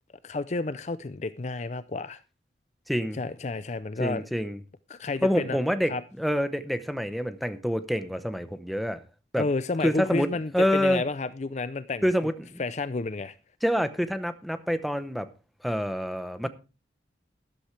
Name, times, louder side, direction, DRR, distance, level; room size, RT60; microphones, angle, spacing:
voice 1, 0.2-2.2 3.1-4.3 4.9-5.6 5.9-6.0 9.4-12.0 12.6-13.3, left 3 dB, 40° left, 0.5 m, -31 dB
voice 2, 2.9-3.2 4.0-4.6 5.2-5.9 6.2-9.0 9.3-9.4 9.8-10.3 10.5-11.0 12.0-12.6 13.6-15.3 15.6-16.5, equal, ahead, 0.8 m, -27 dB
13.5 x 11.5 x 3.3 m
head